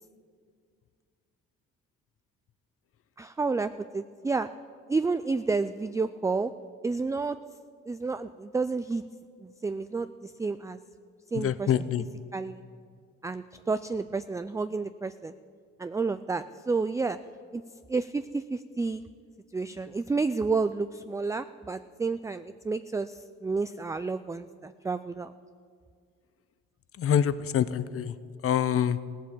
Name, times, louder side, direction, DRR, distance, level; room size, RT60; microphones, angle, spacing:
voice 1, 3.2-4.5 4.9-6.5 6.8-7.4 7.9-9.0 9.4-10.8 11.3-11.8 12.3-12.6 13.2-15.3 15.8-17.2 17.5-17.6 17.9-19.0 19.5-25.3, right 4 dB, 10° right, 11 dB, 0.3 m, -30 dB
voice 2, 11.4-12.0 27.0-28.1 28.4-29.0, left 9 dB, 50° left, 15 dB, 0.6 m, -25 dB
16.5 x 7.4 x 8.5 m, 2.1 s
cardioid pair, 90°, 30 cm